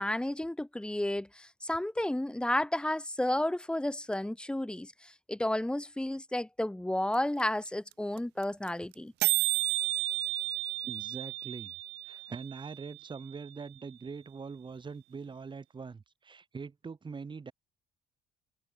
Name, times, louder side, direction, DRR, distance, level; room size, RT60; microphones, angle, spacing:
voice 1, 0.0-9.1, left 1 dB, 5° left, 1.5 m, -32 dB
sound 1, 7.1-7.2 7.4-7.5 7.7-8.2 8.4-8.7 8.9-9.0 9.2-13.2, right 22 dB, 90° right, 0.5 m, -32 dB
voice 2, 10.8-11.7 12.0-17.5, right 5 dB, 30° right, 4.3 m, -43 dB
cardioid pair, 110°, 17 cm